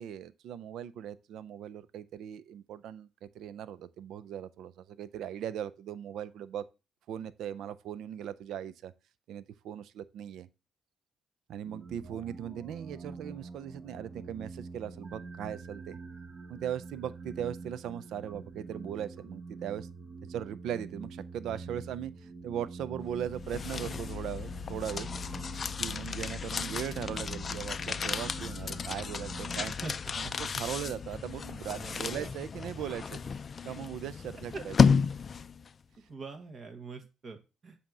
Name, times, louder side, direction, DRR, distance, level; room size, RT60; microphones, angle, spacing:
voice 1, 0.0-6.6 7.1-8.9 9.3-10.5 11.5-16.0 16.5-19.9 20.3-25.1 25.8-29.8 30.2-33.2 33.6-34.7, right 10 dB, 80° right, 0.4 m, -39 dB
sound 1, 11.6-29.7, right 4 dB, 30° right, 0.9 m, -45 dB
sound 2, 23.1-35.7, left 6 dB, 40° left, 0.3 m, -32 dB
voice 2, 31.7-32.3 36.1-37.8, right 4 dB, 50° right, 1.3 m, -44 dB
7.4 x 2.8 x 5.9 m
cardioid pair, 90°, 0 cm